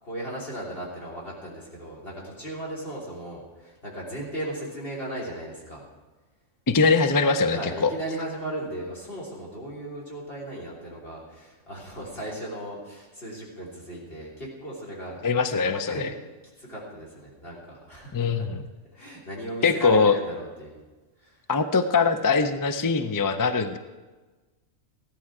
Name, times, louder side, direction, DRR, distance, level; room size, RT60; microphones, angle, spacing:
voice 1, 0.0-5.8 7.5-15.2 15.8-16.1 16.6-18.5 18.9-20.8 21.2-21.4, right 1 dB, 50° left, -4 dB, 3.6 m, -36 dB
voice 2, 6.7-7.9 15.2-16.1 18.1-18.6 19.6-20.2 21.5-23.8, left 4 dB, 35° left, 9 dB, 0.3 m, -22 dB
15.5 x 11.5 x 4.8 m, 1.2 s
omnidirectional pair, 1.3 m